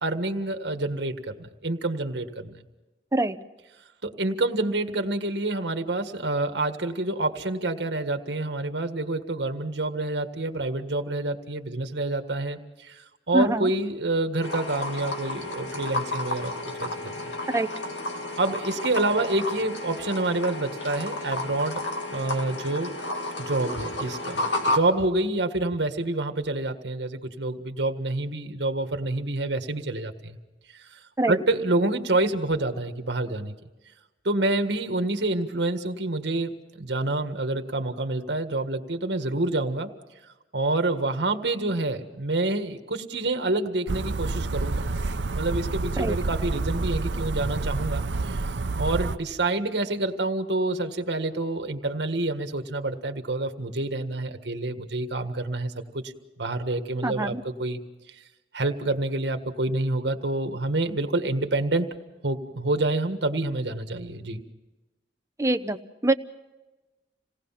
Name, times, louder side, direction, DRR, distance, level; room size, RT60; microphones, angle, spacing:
voice 1, 0.0-2.6 4.0-16.5 16.8-16.9 18.4-21.8 22.1-22.9 23.4-30.4 31.3-33.5 34.2-39.9 40.5-44.9 45.3-48.5 48.8-56.0 56.4-57.8 58.5-61.9 62.2-64.4, right 2 dB, 70° right, 7 dB, 1.7 m, -27 dB
voice 2, 13.3-13.7 17.5-17.7 31.2-31.4 46.0-46.2 57.0-57.4 65.4-66.1, right 2 dB, 15° right, 9 dB, 0.7 m, -24 dB
sound 1, 14.4-24.8, left 2 dB, 85° left, 2.3 m, -31 dB
sound 2, 43.9-49.2, right 3 dB, 90° right, 0.8 m, -28 dB
27.5 x 18.5 x 5.8 m, 1.1 s
head